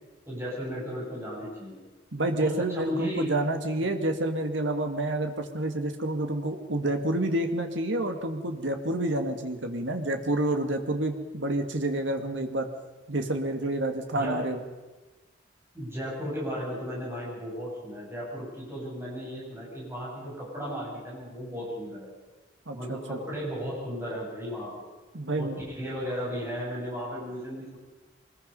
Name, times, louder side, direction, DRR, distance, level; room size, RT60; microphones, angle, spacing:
voice 1, 0.2-1.8 2.4-3.3 14.1-14.4 15.7-22.1 22.7-24.7 25.4-27.8, equal, 15° right, -6 dB, 8.0 m, -35 dB
voice 2, 2.1-12.7 13.1-14.6 22.7-23.2 25.1-25.6, right 1 dB, 85° right, 5 dB, 2.0 m, -29 dB
24.5 x 20.5 x 5.4 m, 1.2 s
head